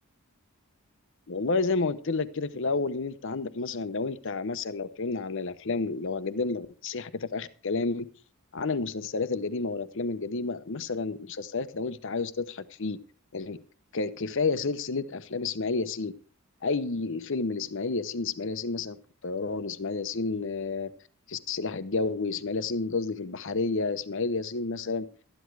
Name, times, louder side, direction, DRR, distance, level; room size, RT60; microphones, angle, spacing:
voice 1, 1.3-8.1 8.5-13.0 13.3-13.6 13.9-16.1 16.6-19.0 19.2-20.9 21.3-25.1, left 3 dB, 60° left, 14 dB, 0.8 m, -30 dB
13.0 x 10.5 x 4.7 m, 0.40 s
head